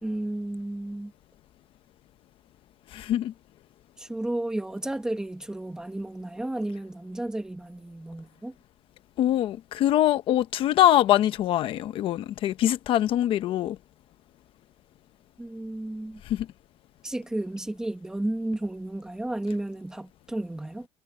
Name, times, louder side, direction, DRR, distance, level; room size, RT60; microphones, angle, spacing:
voice 1, 0.0-1.1 4.0-8.5 15.4-16.2 17.0-20.9, right 1 dB, 5° right, 1.7 m, -32 dB
voice 2, 2.9-3.3 9.2-13.8 16.2-16.5, left 12 dB, 50° left, 0.9 m, -23 dB
cardioid pair, 180°, 12 cm